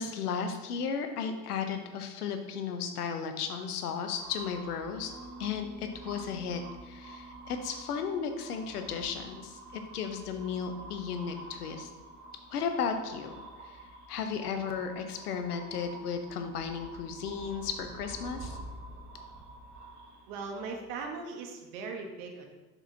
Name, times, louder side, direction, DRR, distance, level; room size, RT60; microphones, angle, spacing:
voice 1, 0.0-5.1 5.4-11.9 12.5-13.3 13.6-18.6, left 6 dB, 75° left, 6 dB, 0.9 m, -35 dB
sound 1, 4.0-21.1, right 2 dB, 75° right, 1.2 m, -48 dB
Bass guitar, 5.0-14.4, right 1 dB, 40° left, 1.7 m, -54 dB
voice 2, 20.3-22.5, right 4 dB, 55° right, 3 dB, 1.3 m, -39 dB
6.9 x 6.1 x 2.8 m, 1.2 s
figure-of-eight pair, 65°, 46 cm